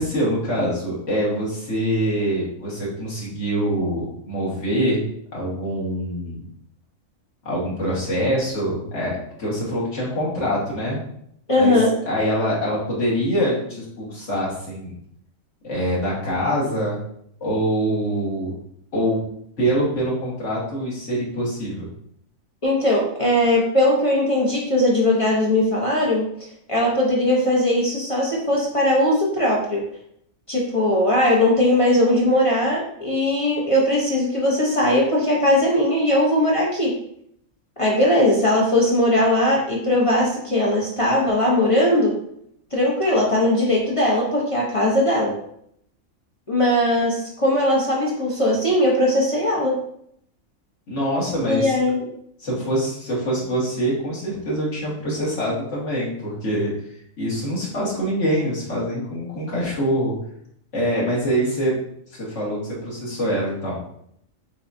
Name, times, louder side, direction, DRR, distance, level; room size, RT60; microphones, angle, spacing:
voice 1, 0.0-5.0 5.3-6.4 7.4-11.0 11.6-11.8 12.1-14.9 15.6-17.0 17.4-18.5 18.9-19.2 19.6-21.9 50.9-51.8 52.4-56.7 57.2-60.1 60.7-61.7 62.2-63.8, equal, 60° left, -6 dB, 1.7 m, -24 dB
voice 2, 11.5-11.9 22.6-26.2 26.7-29.8 30.5-36.9 37.8-42.1 42.7-45.3 46.5-49.8 51.4-52.0, left 1 dB, 30° left, -4 dB, 0.7 m, -19 dB
6.7 x 2.3 x 2.6 m, 0.70 s
omnidirectional pair, 1.4 m